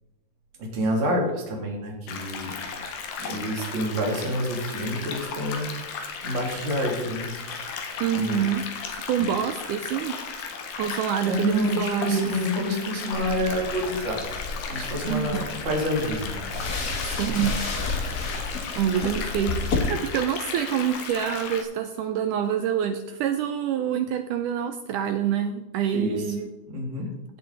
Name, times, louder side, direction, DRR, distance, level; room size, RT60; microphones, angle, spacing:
voice 1, 0.6-2.5 3.2-5.7 6.2-7.6 8.1-8.4 9.2-9.3 11.3-14.2 14.7-16.4 25.9-26.2 26.7-27.1, equal, 30° right, -1 dB, 3.2 m, -28 dB
sound 1, 2.1-21.6, left 5 dB, 75° left, 3.3 m, -35 dB
voice 2, 8.0-8.6 8.9-10.2 10.8-12.3 15.1-15.5 17.0-17.5 18.8-26.5, right 9 dB, 80° right, 7 dB, 1.8 m, -26 dB
sound 2, 13.1-19.8, left 3 dB, 60° left, 1.0 m, -32 dB
16.5 x 7.8 x 4.0 m, 1.1 s
omnidirectional pair, 4.4 m